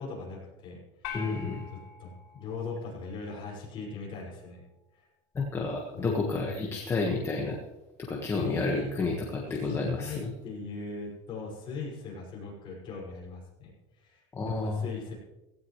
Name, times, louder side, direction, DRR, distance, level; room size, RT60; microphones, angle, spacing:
voice 1, 0.0-1.4 1.7-4.6 4.9-5.1 5.9-6.0 6.4-6.8 8.4-9.0 9.5-15.1, left 3 dB, 35° left, -4 dB, 5.8 m, -40 dB
sound 1, 1.0-3.5, left 7 dB, 80° left, 4.1 m, -44 dB
voice 2, 1.1-1.6 5.3-7.6 8.0-10.3 14.3-14.8, left 3 dB, 15° left, -1 dB, 1.5 m, -30 dB
17.0 x 16.0 x 3.2 m, 1.0 s
cardioid pair, 170°, 15 cm